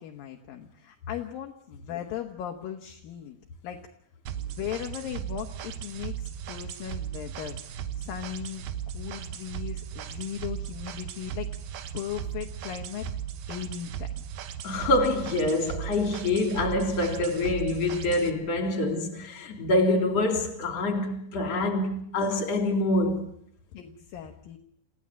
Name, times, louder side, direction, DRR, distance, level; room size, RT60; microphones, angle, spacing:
voice 1, 0.0-3.8 4.3-7.6 7.9-8.6 8.9-11.5 11.9-13.1 13.5-14.1 23.7-24.6, left 10 dB, 70° left, 2.9 m, -37 dB
sound 1, 4.3-18.3, right 9 dB, 75° right, 3.0 m, -37 dB
voice 2, 14.6-23.3, left 2 dB, 45° left, 4.2 m, -26 dB
28.0 x 16.0 x 7.5 m
omnidirectional pair, 4.4 m